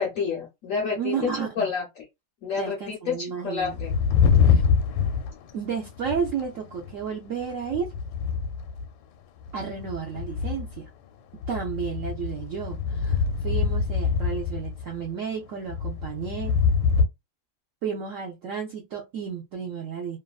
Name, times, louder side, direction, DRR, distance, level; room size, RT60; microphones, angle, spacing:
voice 1, 0.0-2.0 2.4-3.9, left 5 dB, 70° left, 0.8 m, -29 dB
voice 2, 1.0-1.7 2.6-3.8 4.4-4.6 5.5-7.9 9.5-10.9 11.5-16.6 17.8-20.2, right 7 dB, 75° right, 0.7 m, -32 dB
sound 1, 3.6-6.5 6.7-7.1 7.5-8.9 9.5-10.8 11.3-15.1 15.7-17.1, left 6 dB, 85° left, 1.3 m, -25 dB
2.9 x 2.4 x 2.3 m
omnidirectional pair, 2.0 m